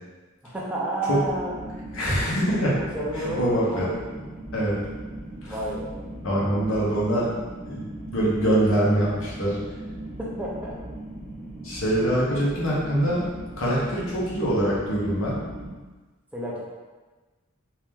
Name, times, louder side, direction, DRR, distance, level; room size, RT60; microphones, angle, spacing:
voice 1, 0.4-1.5 2.8-4.1 5.4-6.0 10.2-10.8 12.0-12.1 16.3-16.6, right 1 dB, 5° right, -5 dB, 0.6 m, -31 dB
sound 1, 1.1-15.7, right 1 dB, 10° left, 1.1 m, -38 dB
voice 2, 1.9-2.8 3.1-3.8 4.5-4.8 5.4-5.5 6.2-7.3 7.7-7.8 8.1-9.6 11.6-13.3 13.6-15.4, right 1 dB, 65° left, -6 dB, 1.1 m, -24 dB
3.0 x 2.9 x 3.6 m, 1.3 s
head